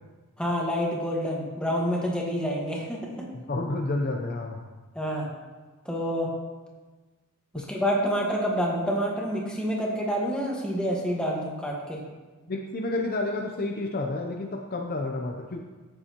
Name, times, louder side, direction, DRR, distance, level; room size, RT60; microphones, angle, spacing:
voice 1, 0.4-3.2 4.9-5.3 5.8-6.3 7.5-12.0, equal, 5° left, -3 dB, 1.5 m, -28 dB
voice 2, 3.3-4.6 7.5-7.7 12.5-15.6, left 2 dB, 40° left, 2 dB, 0.6 m, -30 dB
14.0 x 6.9 x 3.0 m, 1.3 s
head